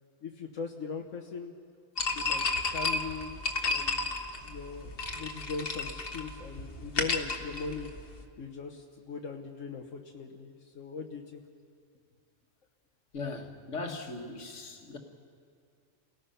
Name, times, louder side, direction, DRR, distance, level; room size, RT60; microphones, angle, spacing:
voice 1, 0.2-1.5 2.1-4.1 4.4-7.9 8.4-11.4, left 5 dB, 85° left, 1.5 m, -40 dB
sound 1, 2.0-8.2, left 3 dB, 50° left, 1.6 m, -32 dB
voice 2, 13.1-15.0, left 3 dB, 70° left, 1.9 m, -39 dB
29.5 x 18.5 x 5.7 m
omnidirectional pair, 1.3 m